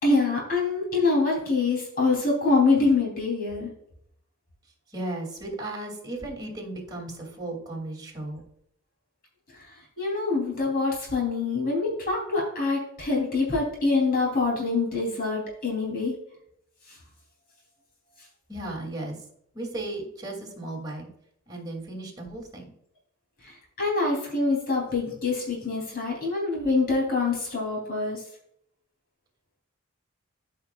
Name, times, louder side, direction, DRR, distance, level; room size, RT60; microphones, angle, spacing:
voice 1, 0.0-3.7 10.0-16.1 23.4-28.2, left 3 dB, 45° left, -2 dB, 3.5 m, -25 dB
voice 2, 4.9-8.4 18.5-19.2 19.5-21.1 21.5-22.7, right 2 dB, 20° right, 0 dB, 2.8 m, -35 dB
14.0 x 5.8 x 2.5 m, 0.72 s
head